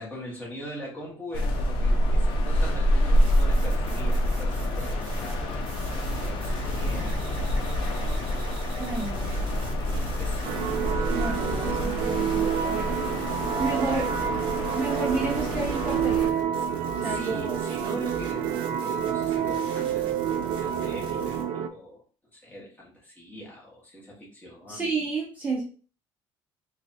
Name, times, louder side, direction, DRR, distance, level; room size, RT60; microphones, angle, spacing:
voice 1, 0.0-7.2 8.0-8.6 9.9-11.4 14.3-14.4 16.9-20.1 20.6-22.0 22.3-24.9, equal, 15° left, -4 dB, 1.5 m, -42 dB
sound 1, 1.3-16.3, equal, 60° left, 0.7 m, -27 dB
sound 2, 3.1-21.4, right 4 dB, 55° right, 0.9 m, -44 dB
voice 2, 8.8-9.3 11.1-13.3 13.6-14.1 14.7-16.4 16.9-17.5 24.7-25.6, right 3 dB, 15° right, -3 dB, 0.6 m, -31 dB
sound 3, 10.4-21.7, right 9 dB, 90° right, 0.4 m, -28 dB
3.2 x 2.3 x 4.1 m, 0.38 s
cardioid pair, 170°, 10 cm